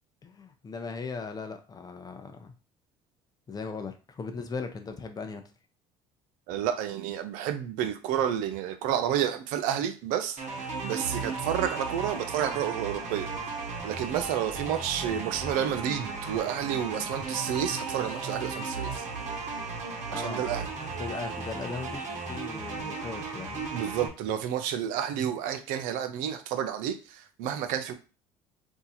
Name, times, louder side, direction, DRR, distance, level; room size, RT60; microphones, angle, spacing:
voice 1, 0.2-2.5 3.5-5.4 20.1-20.6 20.9-23.7, left 4 dB, 30° left, 6 dB, 0.7 m, -38 dB
voice 2, 6.5-10.4 10.8-13.3 13.8-19.0 20.1-20.7 23.7-27.9, right 10 dB, 80° right, 8 dB, 0.6 m, -30 dB
sound 1, 10.4-24.1, right 4 dB, 60° right, 1.1 m, -35 dB
2.8 x 2.3 x 4.1 m, 0.33 s
supercardioid pair, 85°, 14 cm